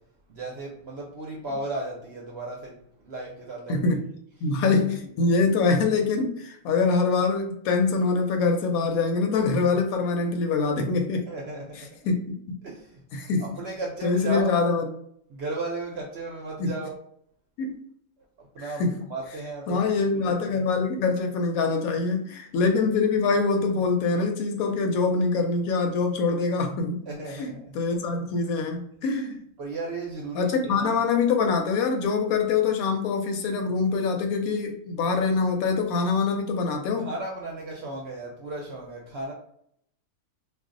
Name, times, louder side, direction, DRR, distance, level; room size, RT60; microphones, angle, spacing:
voice 1, 0.3-3.8 11.2-12.1 12.6-13.0 13.4-14.6 15.3-16.9 18.4-18.8 19.1-19.8 20.1-20.6 22.6-22.7 27.1-27.8 29.6-30.9 37.0-39.3, right 2 dB, 60° right, -2 dB, 0.7 m, -35 dB
voice 2, 3.7-4.0 4.4-11.3 12.0-12.6 13.1-13.6 14.0-14.9 16.6-16.7 17.6-17.8 18.6-19.0 19.7-27.0 27.3-29.4 30.3-37.1, left 4 dB, 75° left, 4 dB, 1.0 m, -24 dB
2.5 x 2.1 x 3.7 m, 0.69 s
omnidirectional pair, 1.6 m